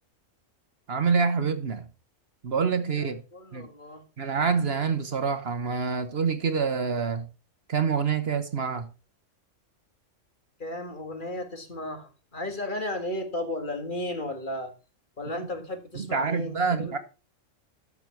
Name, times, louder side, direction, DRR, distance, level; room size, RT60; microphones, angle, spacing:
voice 1, 0.9-1.9 2.4-3.2 3.5-3.7 4.2-7.3 7.7-8.9 16.0-17.0, right 5 dB, 55° right, 1.1 m, -26 dB
voice 2, 2.9-4.0 10.6-14.7 15.2-17.0, left 1 dB, 40° left, 1.9 m, -34 dB
12.5 x 6.6 x 4.5 m
omnidirectional pair, 1.3 m